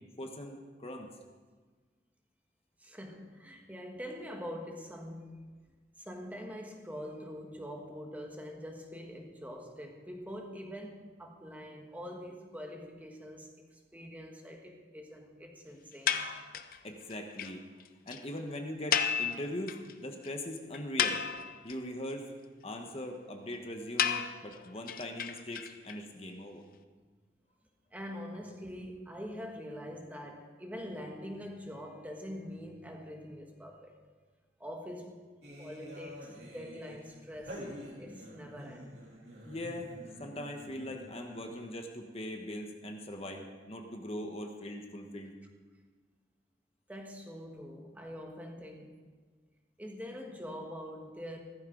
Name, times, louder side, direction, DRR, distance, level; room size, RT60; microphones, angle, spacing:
voice 1, 0.2-1.1 16.8-17.6 18.1-21.2 21.6-22.3 22.6-26.6 39.4-39.9 40.2-45.3, left 1 dB, 35° left, 3 dB, 1.2 m, -41 dB
voice 2, 2.8-5.3 6.0-16.3 27.9-33.9 34.6-35.2 35.6-37.6 38.0-39.0 46.9-48.9 49.8-51.4, equal, 10° right, 1 dB, 1.4 m, -44 dB
sound 1, 16.1-16.8 17.1-17.2 17.4-17.5 17.8-17.9 18.1-18.2 18.9-19.9 20.2-20.3 20.7-21.7 24.0-25.9, left 8 dB, 55° left, 0.7 m, -32 dB
sound 2, 35.4-41.9, equal, 65° right, 3.2 m, -48 dB
16.0 x 14.0 x 3.9 m, 1.4 s
head